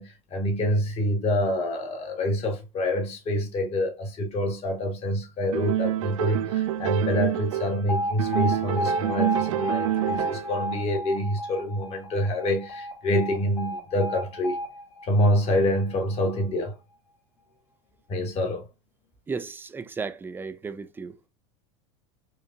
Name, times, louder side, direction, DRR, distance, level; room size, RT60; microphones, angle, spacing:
voice 1, 0.0-14.6 15.0-16.7 18.1-18.6, left 1 dB, 40° left, 1.5 m, -26 dB
sound 1, 5.5-7.9 8.2-10.6, right 12 dB, 80° right, 0.4 m, -27 dB
Alarm, 7.9-15.9, equal, 80° left, 1.8 m, -32 dB
voice 2, 19.3-21.2, right 5 dB, 10° right, 0.4 m, -34 dB
4.6 x 2.5 x 2.4 m
hypercardioid pair, 100°, 16 cm